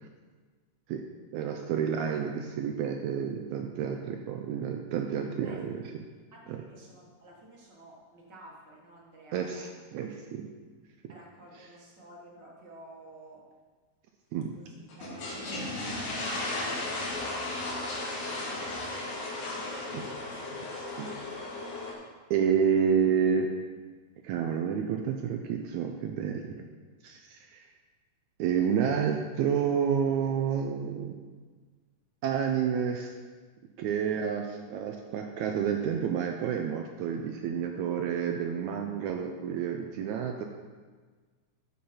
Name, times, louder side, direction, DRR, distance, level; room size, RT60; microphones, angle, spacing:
voice 1, 1.3-5.8 6.5-6.6 9.3-10.4 14.3-14.5 19.9-20.0 21.0-21.2 22.3-23.5 24.2-26.7 27.0-27.6 28.4-31.2 32.2-33.1 33.8-40.4, right 7 dB, 85° right, 3 dB, 1.7 m, -29 dB
voice 2, 6.3-9.7 11.1-13.4 14.5-19.7, right 1 dB, 45° right, -3 dB, 1.6 m, -52 dB
sound 1, 14.9-21.9, left 2 dB, 75° left, 3.3 m, -35 dB
13.0 x 5.5 x 4.3 m, 1.4 s
omnidirectional pair, 3.9 m